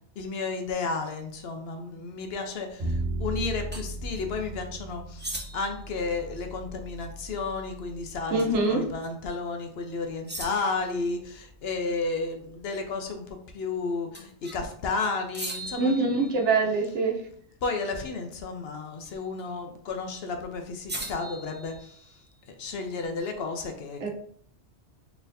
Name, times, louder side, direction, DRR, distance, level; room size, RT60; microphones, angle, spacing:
voice 1, 0.2-16.3 17.6-21.9 22.5-24.1, left 4 dB, 65° left, 5 dB, 0.8 m, -32 dB
Bowed string instrument, 2.8-9.0, right 2 dB, 45° right, 1.3 m, -36 dB
sound 1, 3.7-3.9 5.2-5.8 8.4-8.6 9.0-9.1 10.3-10.9 14.1-14.7 15.3-16.7 19.0-19.4 20.9-22.3, right 1 dB, 15° right, 0.4 m, -39 dB
voice 2, 8.3-8.9 15.8-17.2 24.0-24.1, right 3 dB, 80° right, 1 dB, 1.1 m, -24 dB
4.2 x 3.4 x 2.6 m, 0.63 s
omnidirectional pair, 1.2 m